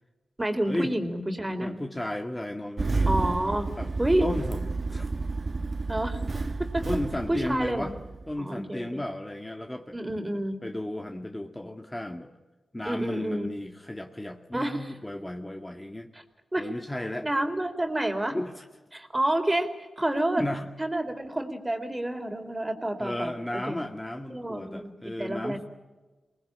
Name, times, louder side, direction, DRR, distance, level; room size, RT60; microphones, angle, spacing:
voice 1, 0.4-1.7 3.1-3.7 4.0-4.3 5.9-6.2 6.7-6.8 7.3-7.9 8.4-9.0 9.9-10.6 12.9-13.5 14.5-14.9 16.1-16.2 16.5-16.7 17.2-18.4 18.9-19.7 20.0-20.4 20.8-23.8 24.3-24.9 25.2-25.6, right 1 dB, 20° right, 6 dB, 3.9 m, -29 dB
voice 2, 1.6-3.1 3.8-3.9 4.2-5.3 6.9-7.9 8.3-10.0 10.6-12.3 12.7-16.1 16.6-17.3 18.3-18.6 20.4-20.7 23.0-25.7, left 1 dB, 15° left, 4 dB, 1.9 m, -34 dB
Engine starting, 2.8-8.3, right 3 dB, 50° right, 1.3 m, -30 dB
23.5 x 19.5 x 8.8 m, 1.2 s
cardioid pair, 50°, 0 cm